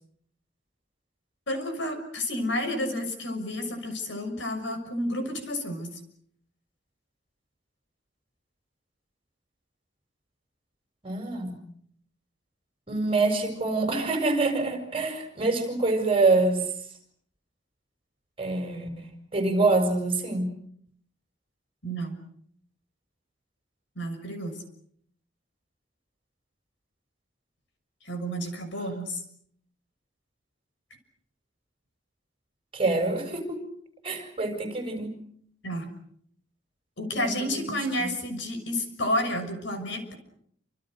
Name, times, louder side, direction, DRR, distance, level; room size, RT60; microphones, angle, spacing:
voice 1, 1.5-6.0 21.8-22.2 24.0-24.5 28.0-29.2 35.6-35.9 37.0-40.1, left 1 dB, 70° left, 7 dB, 6.5 m, -30 dB
voice 2, 11.0-11.6 12.9-16.6 18.4-20.5 32.7-33.6 34.0-35.1 37.1-38.1, right 3 dB, 30° right, 5 dB, 6.8 m, -26 dB
29.0 x 27.0 x 6.6 m, 0.66 s
head